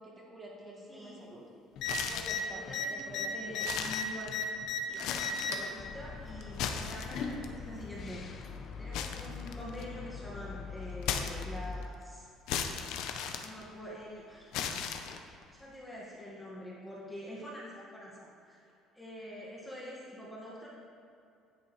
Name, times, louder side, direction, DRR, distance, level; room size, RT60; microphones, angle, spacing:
voice 1, 0.0-1.4 2.1-3.6 7.2-7.4, equal, 25° right, -3 dB, 1.8 m, -48 dB
voice 2, 0.9-1.3 2.5-4.3 4.8-8.2 8.8-12.3 13.2-14.5 15.5-20.7, equal, 5° left, -6 dB, 1.5 m, -46 dB
sound 1, 1.8-2.5 3.0-3.1 3.5-4.6 4.9-5.6 6.4-7.5 8.9-10.0 11.0-11.8 12.5-14.0 14.5-15.4, left 8 dB, 75° left, 0.6 m, -36 dB
sound 2, 1.8-1.9 2.2-2.4 2.7-4.8 5.1-5.7 6.7-7.4 8.4-8.5, left 6 dB, 60° left, 1.0 m, -35 dB
sound 3, 5.8-11.9, left 5 dB, 40° left, 0.6 m, -43 dB
10.0 x 8.2 x 3.1 m, 2.6 s
cardioid pair, 140°, 0 cm